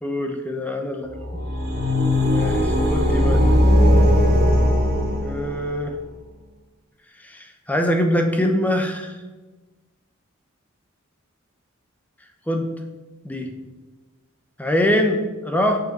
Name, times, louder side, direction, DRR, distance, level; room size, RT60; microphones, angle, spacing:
voice 1, 0.0-1.1 2.3-3.5 5.2-5.9 7.2-9.1 12.5-12.7 13.2-13.5 14.6-15.8, left 1 dB, 10° left, 4 dB, 0.9 m, -23 dB
sound 1, 1.1-5.8, left 1 dB, 50° right, 2.4 m, -18 dB
7.9 x 5.6 x 5.3 m, 1.2 s
head